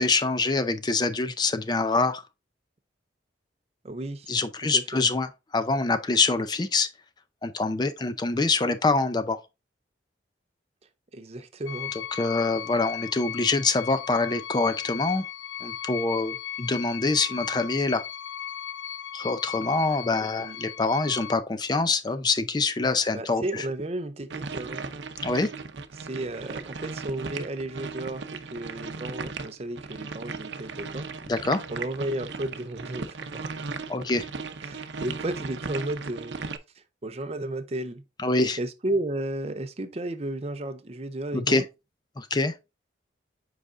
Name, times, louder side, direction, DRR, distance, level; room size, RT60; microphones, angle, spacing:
voice 1, 0.0-2.2 4.3-6.9 7.4-9.4 12.1-15.2 15.6-18.0 19.1-23.6 25.2-25.5 31.3-31.6 33.9-34.3 38.2-38.6 41.3-41.6 42.2-42.5, left 3 dB, 25° left, 0.4 m, -25 dB
voice 2, 3.8-4.4 4.7-5.0 11.1-11.9 20.1-20.6 23.1-24.9 25.9-31.1 31.7-33.5 34.6-36.4 36.8-38.0 38.6-41.6, right 1 dB, 35° right, 0.5 m, -33 dB
sound 1, 11.7-21.4, left 10 dB, 90° left, 0.5 m, -37 dB
sound 2, 24.3-36.6, right 4 dB, 75° right, 0.7 m, -37 dB
7.8 x 4.8 x 2.5 m
head